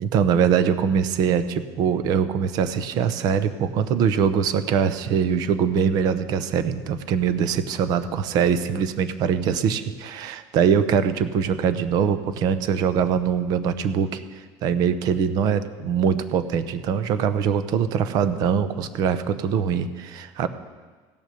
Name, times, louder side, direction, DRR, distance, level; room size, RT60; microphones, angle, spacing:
voice 1, 0.0-14.2 14.6-20.5, right 7 dB, 45° right, 12 dB, 0.7 m, -22 dB
16.5 x 6.5 x 6.8 m, 1.4 s
cardioid pair, 175°, 9 cm